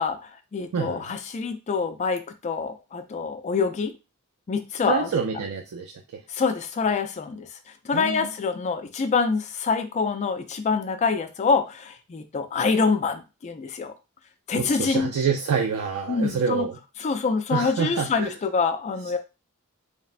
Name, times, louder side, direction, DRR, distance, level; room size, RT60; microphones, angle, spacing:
voice 1, 0.0-3.9 4.5-5.1 6.3-7.5 7.8-13.9 14.5-15.1 16.1-16.7 17.0-19.2, left 5 dB, 35° left, 8 dB, 0.3 m, -26 dB
voice 2, 0.7-1.0 4.9-5.9 7.9-8.3 14.5-16.8 17.5-18.4, right 6 dB, 90° right, 3 dB, 0.4 m, -27 dB
3.2 x 2.0 x 2.4 m, 0.28 s
head